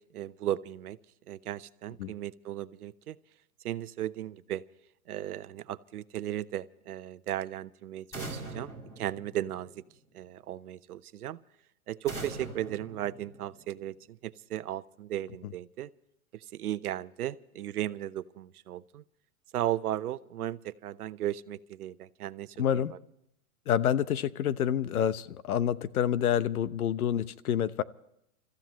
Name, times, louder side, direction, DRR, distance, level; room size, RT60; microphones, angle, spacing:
voice 1, 0.1-1.0 1.3-3.2 3.6-4.6 5.1-9.7 10.1-11.4 11.9-15.9 16.3-19.0 19.5-23.0, right 12 dB, 85° right, 15 dB, 0.9 m, -36 dB
sound 1, 8.1-9.9 12.1-13.8, right 2 dB, 10° left, 2.2 m, -42 dB
voice 2, 22.6-22.9 23.7-27.8, left 9 dB, 80° left, 15 dB, 1.0 m, -28 dB
30.0 x 14.5 x 3.1 m, 0.77 s
hypercardioid pair, 175°, 43 cm